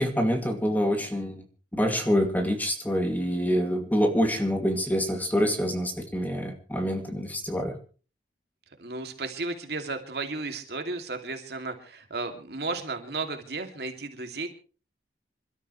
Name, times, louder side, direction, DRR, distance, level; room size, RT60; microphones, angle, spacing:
voice 1, 0.0-1.4 1.7-7.7, equal, 10° left, 4 dB, 2.4 m, -26 dB
voice 2, 8.8-14.5, right 3 dB, 65° right, 5 dB, 2.6 m, -34 dB
27.0 x 13.0 x 3.2 m, 0.37 s
head